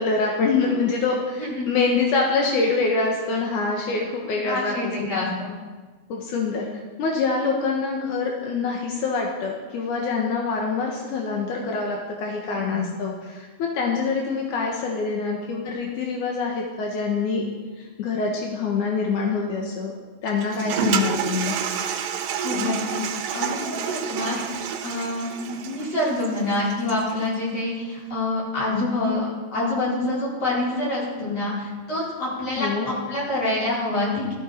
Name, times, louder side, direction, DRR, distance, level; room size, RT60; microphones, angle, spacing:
voice 1, 0.0-4.7 5.0-5.1 6.1-6.7 7.0-17.4 17.8-19.9 20.2-21.6 32.6-32.9, left 4 dB, 65° left, 0 dB, 2.1 m, -25 dB
voice 2, 4.4-5.5 12.5-12.8 22.4-23.0 23.3-24.4 24.8-34.3, left 2 dB, 35° left, -7 dB, 5.8 m, -26 dB
Toilet flush, 20.3-27.2, right 7 dB, 75° right, 3.1 m, -29 dB
16.5 x 13.5 x 4.5 m, 1.4 s
omnidirectional pair, 5.1 m